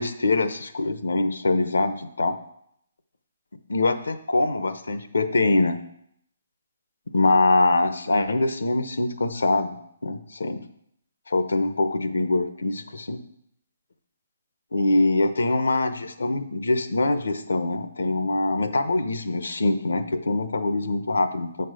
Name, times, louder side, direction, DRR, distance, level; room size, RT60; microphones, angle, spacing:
voice 1, 0.0-2.4 3.7-5.8 7.1-9.8 10.0-10.6 11.3-13.2 14.7-21.7, left 2 dB, 90° left, 10 dB, 0.8 m, -23 dB
7.8 x 4.7 x 6.3 m, 0.73 s
hypercardioid pair, 150°, 0 cm